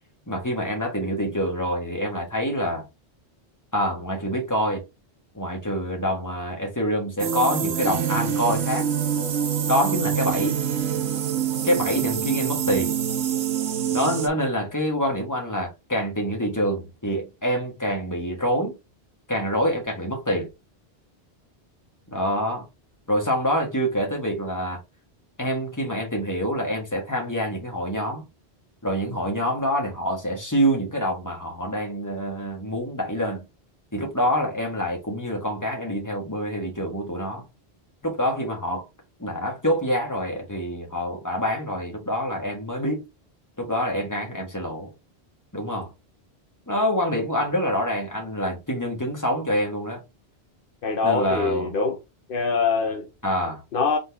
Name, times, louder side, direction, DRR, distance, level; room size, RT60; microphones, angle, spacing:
voice 1, 0.3-2.8 3.7-4.8 5.3-8.9 9.7-10.6 11.6-13.0 13.9-18.8 19.3-20.5 22.1-22.6 23.1-24.8 25.4-28.2 28.8-33.4 33.9-37.4 38.0-38.8 39.2-43.0 43.6-44.9 45.5-45.9 46.7-50.0 51.0-51.7 53.2-53.6, equal, 15° left, 1.5 m, -26 dB
sound 1, 7.2-14.3, right 8 dB, 85° right, 1.0 m, -25 dB
voice 2, 50.8-52.0 52.3-53.0 53.7-54.0, left 4 dB, 60° left, 0.9 m, -23 dB
4.0 x 3.7 x 3.4 m
omnidirectional pair, 1.1 m